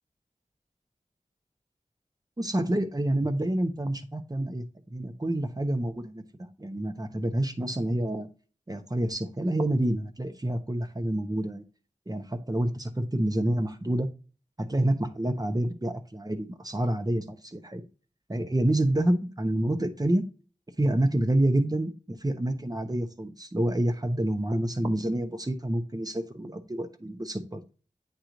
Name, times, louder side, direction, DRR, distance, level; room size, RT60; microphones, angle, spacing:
voice 1, 2.4-4.6 4.9-6.2 6.6-8.3 8.7-11.6 12.1-14.1 14.6-17.8 18.3-20.2 20.8-27.6, right 1 dB, 25° right, 7 dB, 1.0 m, -28 dB
8.7 x 3.1 x 3.9 m, 0.34 s
wide cardioid pair, 55°, 14 cm